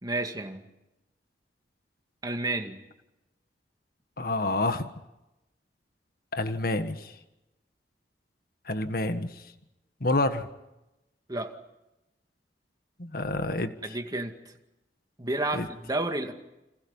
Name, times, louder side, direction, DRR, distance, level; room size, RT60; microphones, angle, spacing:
voice 1, 0.0-0.6 2.2-2.8 11.3-11.6 13.8-14.5 15.2-16.3, right 2 dB, 20° right, 5 dB, 2.2 m, -31 dB
voice 2, 4.2-4.9 6.3-7.0 8.7-9.3 10.0-10.5 13.0-13.7 15.5-15.7, left 2 dB, 55° left, 9 dB, 1.6 m, -28 dB
30.0 x 27.5 x 5.6 m, 0.96 s
head